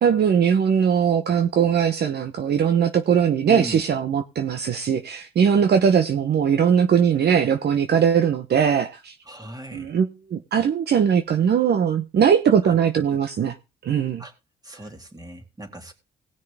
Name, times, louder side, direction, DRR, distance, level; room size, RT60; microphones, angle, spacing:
voice 1, 0.0-9.1 9.7-13.6 13.8-14.2, right 7 dB, 55° right, 1.0 m, -20 dB
voice 2, 3.5-4.0 9.2-9.9 12.6-12.8 14.2-14.3 14.6-15.9, right 1 dB, 20° right, 3.1 m, -38 dB
18.5 x 6.4 x 3.5 m
cardioid pair, 90°, 20 cm